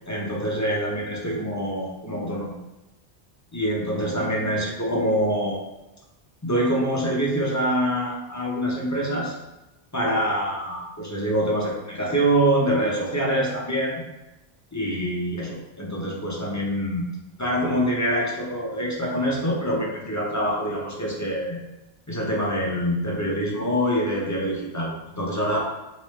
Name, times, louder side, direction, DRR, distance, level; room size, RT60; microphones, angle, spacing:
voice 1, 0.1-2.5 3.5-5.6 6.4-9.3 9.9-14.0 14.7-17.0 17.4-21.6 22.1-25.7, equal, 20° left, -4 dB, 0.5 m, -25 dB
3.1 x 3.1 x 3.2 m, 1.0 s
omnidirectional pair, 1.1 m